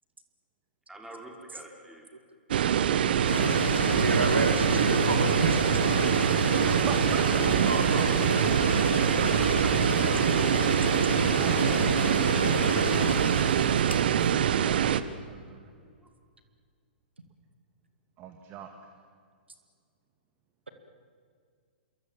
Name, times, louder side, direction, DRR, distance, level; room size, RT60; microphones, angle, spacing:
voice 1, 0.9-2.0 9.4-9.7, right 1 dB, 5° right, 1 dB, 4.6 m, -45 dB
sound 1, 2.5-15.0, right 9 dB, 60° right, 1.1 m, -24 dB
sound 2, 3.3-14.4, left 4 dB, 80° left, 0.9 m, -32 dB
voice 2, 3.9-5.8 7.7-8.2, right 2 dB, 85° right, 7 dB, 2.3 m, -29 dB
voice 3, 6.6-7.4 11.4-12.0 14.4-15.7 18.2-18.7, right 8 dB, 30° right, 6 dB, 2.1 m, -42 dB
26.5 x 23.0 x 7.5 m, 2.1 s
figure-of-eight pair, 115°, 6 cm